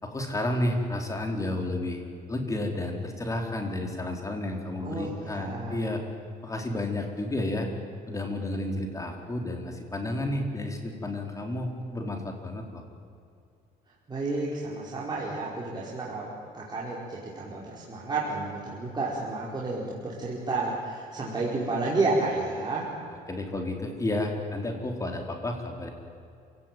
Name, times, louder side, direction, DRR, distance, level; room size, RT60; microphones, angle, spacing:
voice 1, 0.0-2.0 2.3-6.0 6.4-7.7 8.1-12.8 23.3-25.9, left 1 dB, 20° left, 3 dB, 4.4 m, -31 dB
voice 2, 4.8-5.8 14.1-22.9, right 3 dB, 25° right, -6 dB, 4.9 m, -31 dB
28.0 x 17.5 x 9.3 m, 2.4 s
cardioid pair, 110°, 17 cm